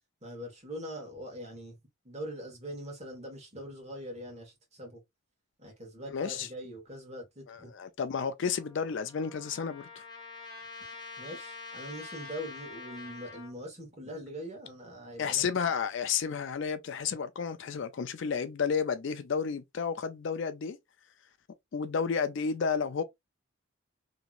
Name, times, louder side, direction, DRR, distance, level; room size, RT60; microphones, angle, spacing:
voice 1, 0.2-1.8 2.0-5.0 5.6-7.7 11.2-15.4, equal, 30° right, 1.3 m, -42 dB
voice 2, 6.1-6.5 7.5-10.0 15.2-20.8 21.7-23.0, left 6 dB, 55° left, 0.4 m, -31 dB
Trumpet, 8.4-13.5, left 4 dB, 20° left, 0.7 m, -46 dB
3.0 x 2.7 x 2.4 m
head